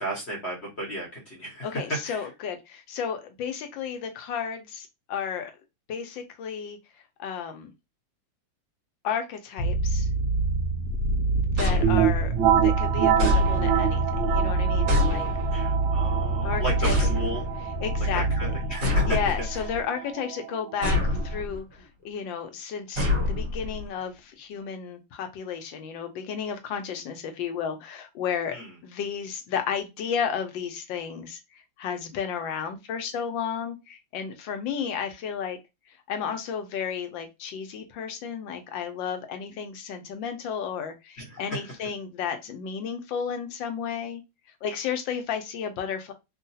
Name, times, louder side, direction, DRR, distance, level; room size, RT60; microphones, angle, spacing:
voice 1, 0.0-2.3 15.5-17.4 18.1-19.2 19.5-19.6 28.5-28.7 41.2-41.6, right 1 dB, 40° left, 1.0 m, -33 dB
voice 2, 1.6-5.5 5.9-6.8 7.2-7.7 9.0-10.1 11.5-15.3 16.4-16.9 17.8-18.5 19.1-28.5 28.8-35.6 36.1-44.2 44.6-46.1, left 7 dB, 70° left, 1.3 m, -33 dB
sound 1, 9.6-18.8, right 2 dB, 85° left, 1.5 m, -26 dB
sound 2, 11.6-12.5 13.2-14.0 14.9-15.7 16.8-17.6 18.8-19.8 20.8-21.6 23.0-23.9, left 2 dB, 55° right, 1.7 m, -26 dB
sound 3, 11.8-21.4, right 10 dB, 75° right, 1.4 m, -27 dB
3.7 x 2.4 x 2.6 m
omnidirectional pair, 2.3 m